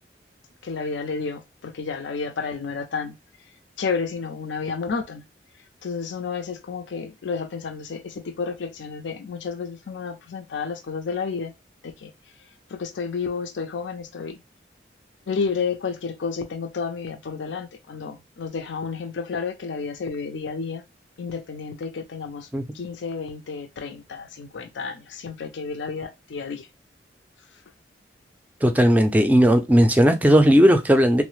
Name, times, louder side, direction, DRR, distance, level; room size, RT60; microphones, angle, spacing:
voice 1, 0.6-3.2 3.8-5.2 5.8-11.5 11.8-12.1 12.7-14.4 15.3-20.8 21.2-22.5 22.7-26.7, left 5 dB, 85° left, 0.5 m, -31 dB
voice 2, 28.6-31.2, equal, 10° right, 0.3 m, -16 dB
3.1 x 2.0 x 3.1 m
head